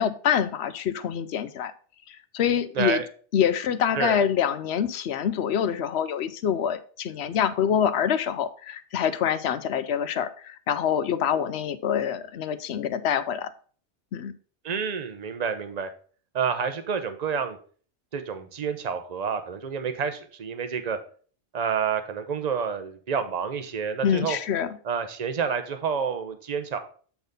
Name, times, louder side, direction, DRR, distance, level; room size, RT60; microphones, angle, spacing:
voice 1, 0.0-1.7 2.1-3.0 3.3-13.5 14.1-14.3 24.0-24.8, left 8 dB, 75° left, 13 dB, 0.9 m, -26 dB
voice 2, 2.7-3.1 3.9-4.2 14.6-15.9 16.3-17.6 18.1-21.0 21.5-24.4 24.8-26.8, right 6 dB, 40° right, 9 dB, 0.9 m, -29 dB
8.2 x 4.0 x 5.2 m, 0.43 s
omnidirectional pair, 1.1 m